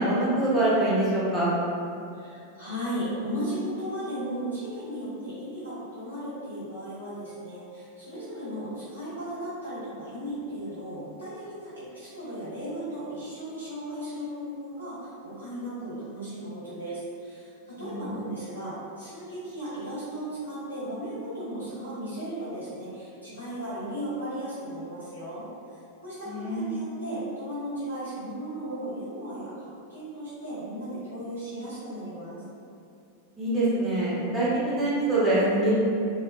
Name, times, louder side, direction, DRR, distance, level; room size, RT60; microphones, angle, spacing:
voice 1, 0.0-1.5 17.8-18.0 26.3-26.7 33.4-35.7, right 1 dB, 10° right, -10 dB, 0.9 m, -24 dB
voice 2, 2.1-25.5 25.7-32.4, right 1 dB, 90° left, -12 dB, 1.3 m, -36 dB
2.4 x 2.0 x 3.0 m, 2.5 s
figure-of-eight pair, 90°, 0 cm